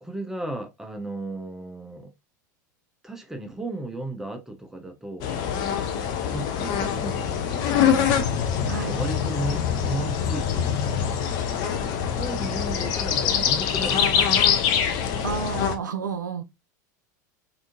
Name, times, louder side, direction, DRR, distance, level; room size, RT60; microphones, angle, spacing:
voice 1, 0.0-2.1 3.0-5.3 6.3-7.9 8.8-10.9 12.1-14.2, right 2 dB, 5° right, 0.7 m, -35 dB
sound 1, 5.2-15.8, left 8 dB, 45° left, 0.6 m, -24 dB
voice 2, 8.7-9.0 15.2-16.4, right 7 dB, 75° right, 0.4 m, -30 dB
3.5 x 2.6 x 2.5 m
figure-of-eight pair, 85°, 10 cm